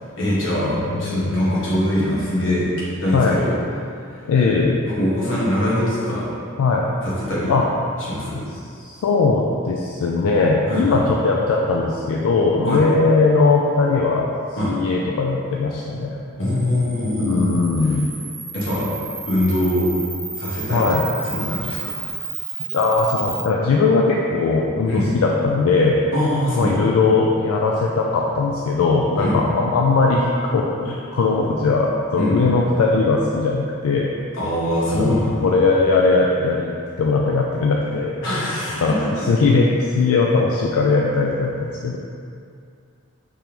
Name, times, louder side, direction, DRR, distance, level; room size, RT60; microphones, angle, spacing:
voice 1, 0.2-2.7 3.0-3.6 4.9-6.3 7.0-7.5 8.1-8.5 10.7-11.0 12.6-12.8 14.6-14.7 16.4-17.6 18.5-18.9 19.3-19.9 20.3-20.8 21.2-21.9 24.8-25.1 26.1-26.8 29.1-29.4 32.1-32.4 34.3-35.5 38.2-38.8 39.2-39.3, left 1 dB, 60° left, -8 dB, 1.2 m, -22 dB
voice 2, 0.9-1.3 3.1-3.4 4.2-4.8 6.6-6.9 7.5-7.6 8.3-8.4 8.8-14.3 14.6-16.2 17.1-18.1 20.7-21.0 22.7-26.0 26.5-30.3 30.5-34.1 34.9-35.2 35.4-38.2 38.8-38.9 39.2-42.0, left 3 dB, 85° left, -2 dB, 0.4 m, -19 dB
Camera, 16.4-23.4, right 4 dB, 20° right, 0.5 m, -32 dB
5.1 x 3.4 x 3.0 m, 2.4 s
head